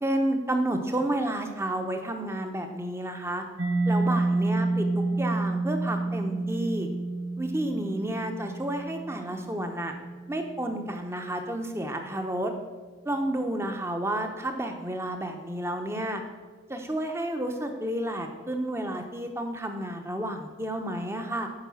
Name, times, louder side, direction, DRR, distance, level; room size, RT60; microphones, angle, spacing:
voice 1, 0.0-3.4 3.9-6.9 7.4-9.9 10.3-12.5 13.0-16.2 16.7-21.5, right 1 dB, 15° right, 5 dB, 0.9 m, -31 dB
Mallet percussion, 3.6-11.1, right 2 dB, 90° right, 1.0 m, -29 dB
8.9 x 5.4 x 7.0 m, 1.4 s
head